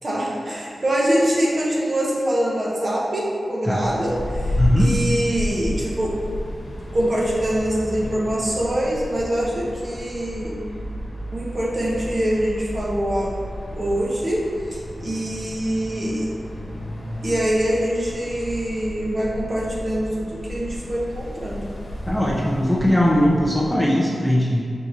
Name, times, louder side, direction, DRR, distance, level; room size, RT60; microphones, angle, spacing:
voice 1, 0.0-6.2 6.9-10.6 11.3-13.3 13.7-14.4 14.7-16.3 17.2-21.7, right 1 dB, 35° right, -4 dB, 0.8 m, -24 dB
sound 1, 3.8-23.7, left 1 dB, 65° left, 1.0 m, -32 dB
voice 2, 4.6-4.9 22.1-24.6, equal, 5° left, -5 dB, 0.5 m, -19 dB
4.6 x 2.7 x 3.9 m, 2.3 s
wide cardioid pair, 105°, 0 cm